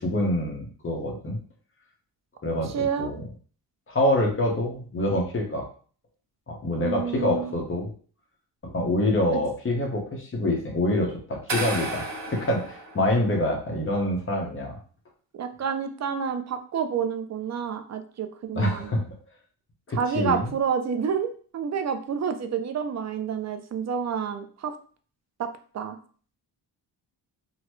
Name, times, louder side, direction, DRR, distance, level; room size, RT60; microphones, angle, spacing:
voice 1, 0.0-1.4 2.4-3.2 3.9-5.6 6.5-7.9 8.6-14.8 15.6-15.7 18.5-19.1 19.9-20.5, left 1 dB, 30° left, 0 dB, 1.0 m, -26 dB
voice 2, 2.7-3.1 6.8-7.5 15.3-19.0 19.9-24.7 25.4-26.0, right 7 dB, 40° right, 8 dB, 0.5 m, -29 dB
sound 1, 11.5-13.6, right 2 dB, 70° right, 1.4 m, -33 dB
3.9 x 2.2 x 3.1 m, 0.43 s
cardioid pair, 110°, 43 cm